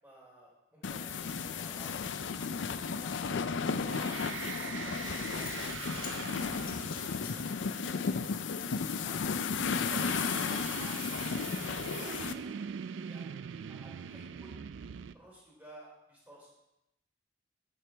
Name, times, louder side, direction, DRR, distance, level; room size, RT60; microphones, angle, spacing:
voice 1, 0.0-4.0 4.5-6.2 6.6-9.2 9.7-10.9 11.2-12.5 13.0-14.7 15.1-16.5, right 1 dB, 10° right, -6 dB, 3.9 m, -55 dB
sound 1, 0.8-12.3, left 5 dB, 75° left, 0.5 m, -34 dB
sound 2, 3.7-8.2 9.7-15.1, right 7 dB, 75° right, 0.4 m, -43 dB
Zipper (clothing) / Coin (dropping), 5.0-5.1 5.3-9.5 9.7-10.0 10.3-12.0, left 6 dB, 50° left, 1.2 m, -50 dB
13.5 x 6.4 x 3.4 m, 0.91 s
head